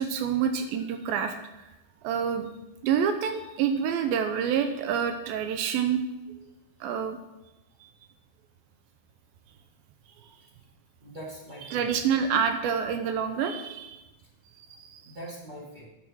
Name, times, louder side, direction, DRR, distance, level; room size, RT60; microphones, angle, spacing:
voice 1, 0.0-1.3 2.0-2.5 2.8-6.0 6.8-7.2 11.7-14.0 14.7-15.0, right 7 dB, 80° right, 7 dB, 2.4 m, -27 dB
voice 2, 11.0-11.9 15.0-15.8, right 1 dB, 30° right, -6 dB, 0.7 m, -42 dB
10.5 x 5.6 x 6.2 m, 1.0 s
omnidirectional pair, 4.5 m